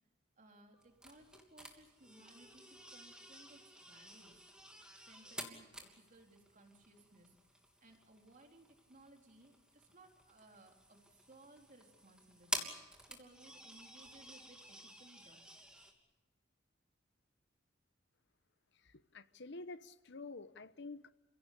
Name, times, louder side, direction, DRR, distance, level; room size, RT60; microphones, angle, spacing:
voice 1, 0.4-4.4 4.9-7.4 7.8-15.6, right 2 dB, 45° right, 2 dB, 3.8 m, -62 dB
sound 1, 0.8-15.9, right 1 dB, 5° right, 3.0 m, -50 dB
voice 2, 18.8-21.1, left 3 dB, 65° left, 13 dB, 1.0 m, -49 dB
29.5 x 16.5 x 8.5 m, 1.1 s
head